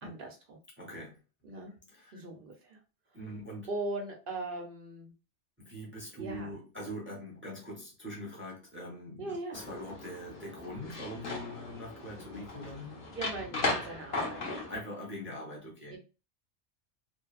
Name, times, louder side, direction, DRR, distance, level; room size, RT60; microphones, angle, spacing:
voice 1, 0.0-0.6 1.4-1.7 2.1-2.8 3.7-5.1 6.2-6.5 9.2-9.6 13.1-14.4 15.9-16.0, right 2 dB, 55° right, 1 dB, 0.9 m, -39 dB
voice 2, 0.8-1.2 1.9-2.2 3.1-3.7 5.6-13.1 13.5-13.8 14.7-16.0, equal, 15° right, -3 dB, 0.6 m, -43 dB
sound 1, 9.5-14.8, left 3 dB, 50° left, 1.0 m, -37 dB
2.7 x 2.2 x 2.3 m, 0.32 s
omnidirectional pair, 1.2 m